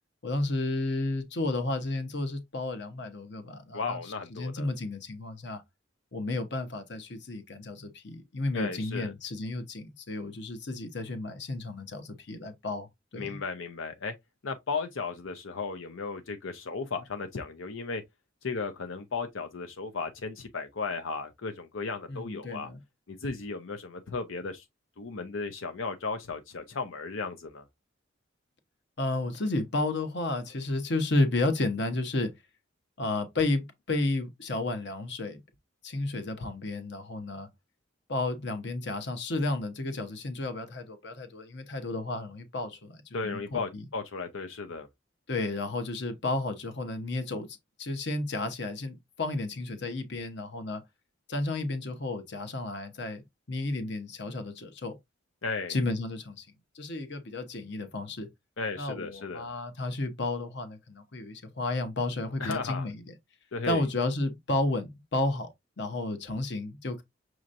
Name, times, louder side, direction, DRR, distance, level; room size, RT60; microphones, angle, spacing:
voice 1, 0.2-4.0 4.3-5.6 6.1-12.9 13.1-13.4 22.1-22.8 29.0-32.3 33.0-35.4 35.8-37.5 38.1-43.8 45.3-47.5 47.8-50.8 51.3-53.2 53.5-54.9 55.7-56.5 56.7-58.3 58.8-63.1 63.6-67.0, left 2 dB, 60° left, 1.0 m, -32 dB
voice 2, 3.7-4.7 8.5-9.1 13.2-14.1 14.4-18.0 18.4-22.7 23.1-24.6 25.0-27.6 43.1-44.9 55.4-55.8 58.6-59.5 62.4-62.9 63.5-63.8, left 4 dB, 90° left, 0.7 m, -35 dB
6.3 x 3.0 x 2.6 m
head